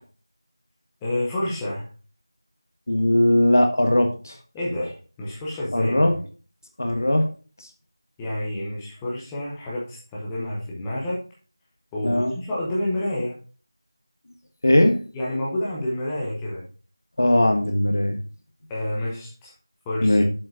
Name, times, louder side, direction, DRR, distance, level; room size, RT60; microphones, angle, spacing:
voice 1, 1.0-1.9 4.5-6.2 8.2-11.2 11.9-13.4 15.1-16.6 18.7-19.5 19.8-20.2, left 1 dB, 5° left, -6 dB, 0.7 m, -29 dB
voice 2, 2.9-4.3 5.7-6.1 6.8-7.3 12.0-12.3 14.6-15.0 17.2-18.2 20.0-20.2, left 1 dB, 45° left, 5 dB, 1.4 m, -19 dB
7.5 x 5.2 x 4.8 m, 0.37 s
figure-of-eight pair, 175°, 2 cm